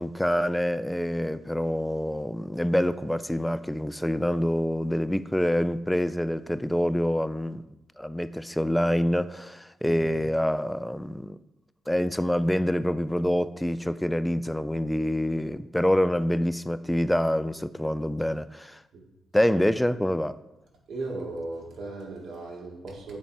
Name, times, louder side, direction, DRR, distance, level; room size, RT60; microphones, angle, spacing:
voice 1, 0.0-7.6 8.0-11.4 11.9-18.8 19.3-20.4, equal, 5° left, 0.3 m, -26 dB
voice 2, 9.8-10.2 18.9-19.0 20.9-23.2, right 2 dB, 55° right, 2.0 m, -37 dB
8.5 x 4.5 x 4.3 m
cardioid pair, 90°, 0 cm